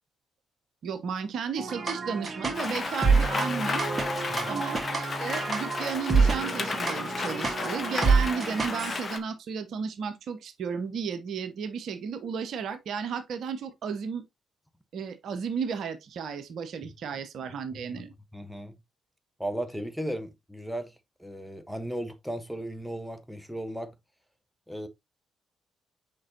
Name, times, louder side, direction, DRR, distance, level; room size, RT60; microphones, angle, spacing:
voice 1, 0.8-3.8 4.5-14.3 14.9-18.1, right 6 dB, 60° right, 0.8 m, -33 dB
sound 1, 1.6-9.0, right 4 dB, 30° right, 2.0 m, -28 dB
Rain, 2.5-9.2, left 4 dB, 45° left, 1.1 m, -33 dB
voice 2, 4.3-4.6 17.7-18.0 18.3-18.8 19.4-20.9 21.2-23.9 24.7-24.9, right 1 dB, ahead, 1.2 m, -36 dB
6.4 x 5.3 x 2.8 m
hypercardioid pair, 40°, 0 cm